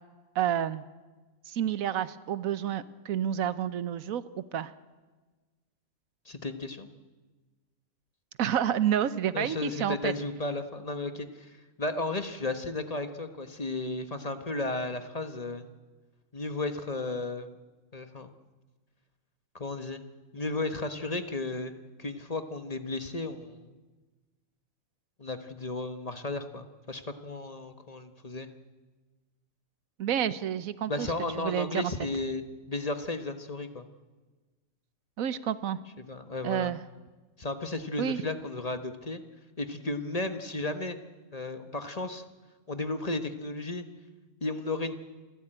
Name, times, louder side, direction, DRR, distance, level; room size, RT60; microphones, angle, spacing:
voice 1, 0.3-0.8 1.5-4.7 8.4-10.1 30.0-31.1 31.4-31.7 35.2-35.8 36.4-36.8 38.0-38.2, right 9 dB, 90° right, 15 dB, 1.3 m, -29 dB
voice 2, 6.2-6.9 9.3-15.7 16.3-17.5 17.9-18.3 19.5-20.0 20.3-21.7 22.0-23.8 25.2-28.5 30.9-33.8 36.0-36.7 37.4-39.2 39.6-41.0 41.3-42.2 42.7-43.8 44.4-45.0, left 2 dB, 30° left, 9 dB, 1.2 m, -34 dB
27.0 x 14.5 x 8.9 m, 1.3 s
omnidirectional pair, 1.4 m